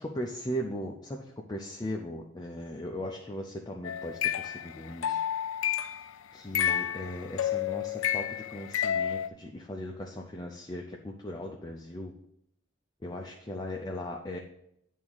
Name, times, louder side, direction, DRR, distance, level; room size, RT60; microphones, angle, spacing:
voice 1, 0.0-5.2 6.3-12.1 13.0-14.4, equal, 20° left, 1 dB, 0.6 m, -38 dB
sound 1, 3.8-6.0 6.5-9.3, left 9 dB, 90° left, 0.4 m, -30 dB
8.9 x 3.6 x 6.3 m, 0.76 s
head